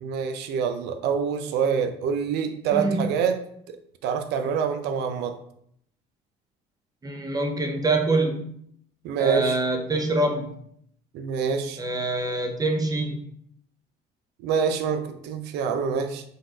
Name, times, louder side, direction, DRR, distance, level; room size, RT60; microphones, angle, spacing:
voice 1, 0.0-3.4 4.0-5.4 9.0-9.6 11.1-11.8 14.4-16.2, right 6 dB, 85° right, 7 dB, 0.5 m, -26 dB
voice 2, 2.7-3.1 7.0-8.5 9.2-10.5 11.8-13.2, right 2 dB, 20° right, 4 dB, 0.7 m, -25 dB
4.0 x 2.5 x 4.4 m, 0.68 s
cardioid pair, 110°, 17 cm